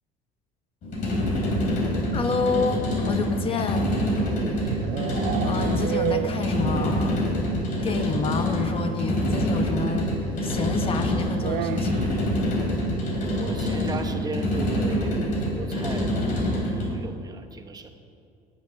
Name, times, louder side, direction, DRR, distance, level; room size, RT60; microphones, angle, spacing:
sound 1, 0.8-17.0, equal, 55° left, 4.4 m, -26 dB
voice 1, 2.1-3.9 5.4-7.2 7.8-10.1 10.4-12.0, left 4 dB, 35° left, 7 dB, 1.2 m, -28 dB
sound 2, 4.1-7.2 7.4-7.5 7.9-8.0 8.2-8.3 9.6-9.7 11.4-12.2, right 14 dB, 65° right, 0.4 m, -31 dB
voice 2, 4.3-4.9 13.4-15.2 15.4-17.9, right 3 dB, 25° right, 6 dB, 1.0 m, -36 dB
17.5 x 8.4 x 6.5 m, 2.5 s
cardioid pair, 125°, 16 cm